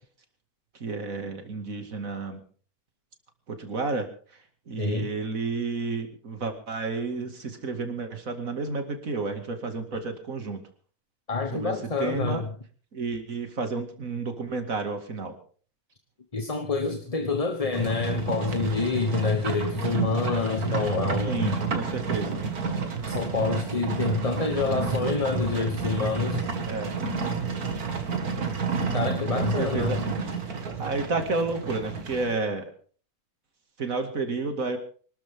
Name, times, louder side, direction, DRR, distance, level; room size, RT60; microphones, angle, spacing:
voice 1, 0.8-2.4 3.5-4.1 4.7-10.6 11.5-11.7 12.0-12.4 12.9-15.4 21.3-22.4 26.7-26.9 29.4-30.0 30.8-32.7 33.8-34.8, right 3 dB, 65° right, 6 dB, 2.7 m, -31 dB
voice 2, 4.8-5.1 11.3-12.4 16.3-21.6 23.1-26.4 28.9-30.0, left 4 dB, 25° left, 5 dB, 1.1 m, -27 dB
Livestock farm animals working animals, 17.7-32.3, right 5 dB, 80° right, 2.5 m, -30 dB
25.0 x 13.0 x 3.7 m, 0.42 s
omnidirectional pair, 1.6 m